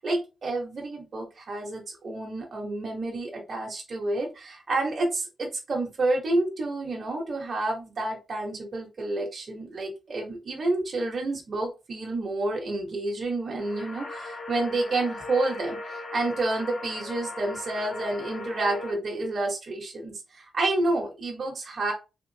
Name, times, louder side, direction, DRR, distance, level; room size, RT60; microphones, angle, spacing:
voice 1, 0.0-21.9, right 2 dB, 50° right, 1 dB, 0.9 m, -29 dB
sound 1, 13.6-18.9, left 2 dB, 55° left, 1.7 m, -38 dB
3.6 x 2.4 x 2.6 m, 0.29 s
cardioid pair, 110°, 0 cm